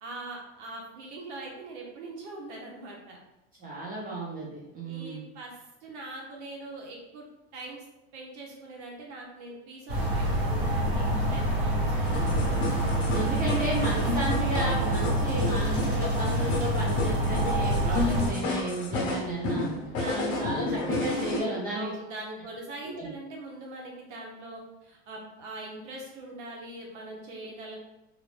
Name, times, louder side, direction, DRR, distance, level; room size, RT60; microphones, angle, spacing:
voice 1, 0.0-3.2 4.9-7.3 7.5-7.8 8.1-12.4 13.2-13.6 17.9-18.4 19.8-20.4 20.7-20.9 21.7-27.8, right 2 dB, 65° right, -1 dB, 0.7 m, -42 dB
voice 2, 3.6-5.2 13.1-19.7 20.1-21.9 22.8-23.1, right 1 dB, 25° right, -4 dB, 0.5 m, -33 dB
sound 1, 9.9-18.3, right 1 dB, 50° right, 1.3 m, -27 dB
sound 2, 12.1-21.4, left 2 dB, 45° left, 0.8 m, -31 dB
2.4 x 2.0 x 3.2 m, 0.93 s
supercardioid pair, 125°, 36 cm